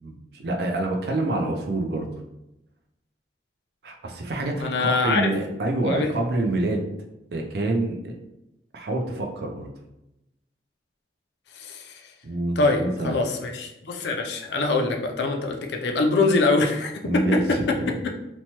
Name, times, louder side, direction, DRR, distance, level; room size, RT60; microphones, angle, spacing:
voice 1, 0.0-2.1 3.8-6.9 7.3-8.2 8.7-9.7 12.2-13.2 17.0-17.9, right 2 dB, 60° right, 2 dB, 0.4 m, -27 dB
voice 2, 4.6-5.3 5.8-6.1 11.5-12.0 12.6-17.6, left 3 dB, 70° left, 2 dB, 0.4 m, -24 dB
2.9 x 2.2 x 2.8 m, 0.88 s
head